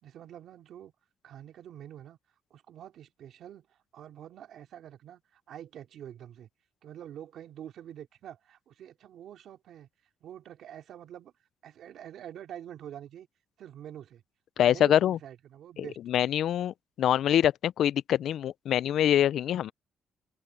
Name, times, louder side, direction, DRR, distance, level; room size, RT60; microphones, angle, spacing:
voice 1, 0.0-0.9 1.2-2.2 2.5-6.5 6.8-9.9 10.2-11.3 11.6-13.3 13.6-14.2 14.6-16.0, right 10 dB, 75° right, 3.0 m, -46 dB
voice 2, 14.6-15.2 15.8-19.7, left 10 dB, 70° left, 0.4 m, -25 dB
open air
cardioid pair, 90°, 0 cm